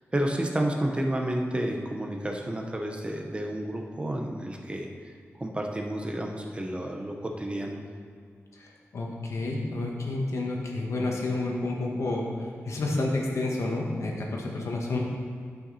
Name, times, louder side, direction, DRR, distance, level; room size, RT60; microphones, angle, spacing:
voice 1, 0.1-4.9 5.3-7.8 14.9-15.0, right 1 dB, 20° right, 2 dB, 0.9 m, -30 dB
voice 2, 8.9-12.3 12.7-15.0, left 2 dB, 75° left, -1 dB, 1.5 m, -29 dB
13.0 x 5.8 x 4.2 m, 2.1 s
wide cardioid pair, 140°, 5 cm